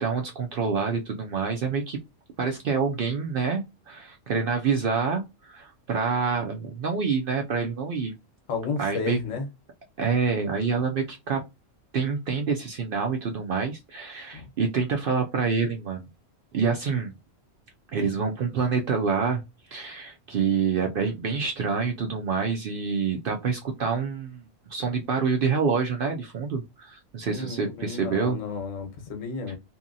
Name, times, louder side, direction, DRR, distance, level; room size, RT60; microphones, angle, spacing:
voice 1, 0.0-2.0 2.4-8.1 8.8-9.2 10.0-11.4 11.9-16.1 16.5-17.1 17.9-19.4 19.7-28.4 29.5-29.6, right 5 dB, 65° right, 0.6 m, -27 dB
voice 2, 8.5-9.5 14.3-14.5 27.3-29.6, left 4 dB, 85° left, 1.2 m, -32 dB
2.8 x 2.7 x 2.5 m
omnidirectional pair, 1.3 m